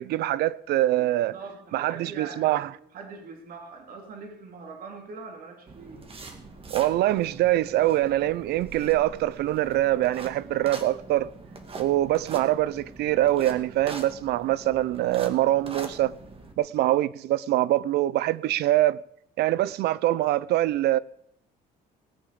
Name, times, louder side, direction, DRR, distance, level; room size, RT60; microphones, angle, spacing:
voice 1, 0.0-1.3 1.7-2.7 6.7-11.3 11.8-16.1 16.6-19.0 19.4-21.0, right 14 dB, 75° right, 0.6 m, -24 dB
voice 2, 0.8-6.0, right 4 dB, 60° right, 3.4 m, -43 dB
sound 1, 5.7-16.5, right 3 dB, 35° right, 2.4 m, -43 dB
19.0 x 8.6 x 6.9 m
cardioid pair, 110°, 17 cm